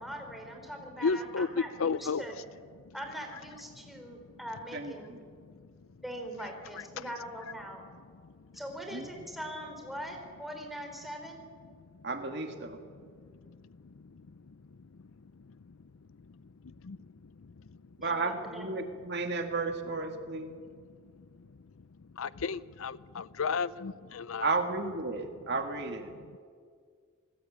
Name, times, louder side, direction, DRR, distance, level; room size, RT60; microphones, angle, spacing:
voice 1, 0.0-2.3 2.9-5.2 6.0-7.9 8.5-11.4 18.0-18.7, equal, ahead, 3.9 m, -42 dB
voice 2, 1.0-2.3 2.8-2.9 3.7-3.8 4.1-4.2 5.5-5.6 6.4-6.5 7.0-7.1 8.2-8.3 13.2-14.9 15.4-15.7 16.3-17.8 21.1-21.5 22.1-24.5 26.1-26.4, left 5 dB, 70° left, 0.5 m, -35 dB
voice 3, 4.7-5.2 8.9-9.1 12.0-12.8 18.0-20.5 24.4-26.1, right 3 dB, 50° right, 2.0 m, -33 dB
27.0 x 19.0 x 8.7 m
head